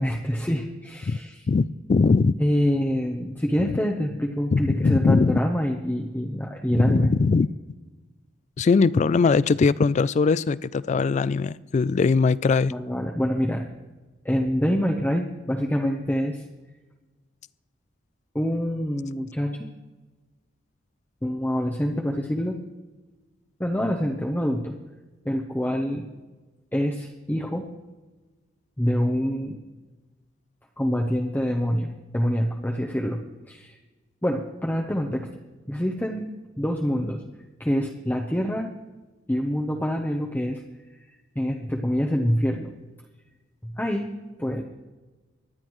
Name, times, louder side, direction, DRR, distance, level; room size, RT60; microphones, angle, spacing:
voice 1, 0.0-1.4 2.4-7.1 12.7-13.6 14.2-16.4 18.3-19.7 21.2-22.6 23.6-24.7 25.2-26.1 26.7-27.7 28.8-29.6 30.8-31.9 32.1-33.8 34.2-35.3 35.7-36.3 36.6-37.2 37.6-38.7 39.3-40.6 41.1-42.7 43.6-44.1 44.4-44.6, equal, 10° left, 0.8 m, -26 dB
voice 2, 1.5-2.4 4.5-5.4 6.7-7.5 8.6-12.7, left 4 dB, 40° left, 0.3 m, -21 dB
24.0 x 10.5 x 3.1 m
head